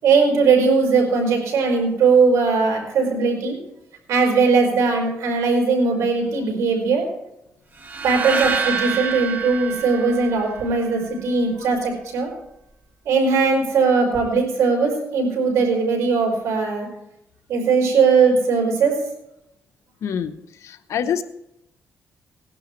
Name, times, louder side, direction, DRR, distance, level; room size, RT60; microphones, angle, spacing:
voice 1, 0.0-3.6 4.1-7.1 8.0-12.3 13.0-16.9 17.5-18.9, right 4 dB, 90° right, 0 dB, 5.0 m, -19 dB
sound 1, 7.8-11.0, right 6 dB, 35° right, 2.3 m, -27 dB
voice 2, 20.0-20.3 20.6-21.2, left 8 dB, 75° left, 9 dB, 0.9 m, -25 dB
18.5 x 11.0 x 3.2 m, 0.84 s
cardioid pair, 90°, 5 cm